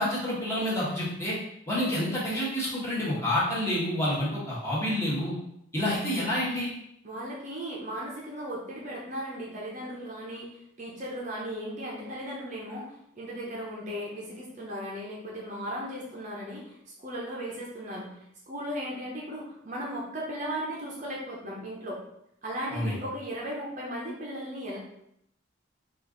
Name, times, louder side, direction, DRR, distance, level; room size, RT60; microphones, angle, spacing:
voice 1, 0.0-1.4 1.7-5.4 5.7-6.7 22.7-23.0, left 1 dB, 15° left, -7 dB, 1.2 m, -28 dB
voice 2, 7.0-12.9 13.2-16.8 17.0-18.1 18.5-22.0 22.4-24.8, equal, 35° right, -3 dB, 0.7 m, -36 dB
4.3 x 2.5 x 3.8 m, 0.75 s
head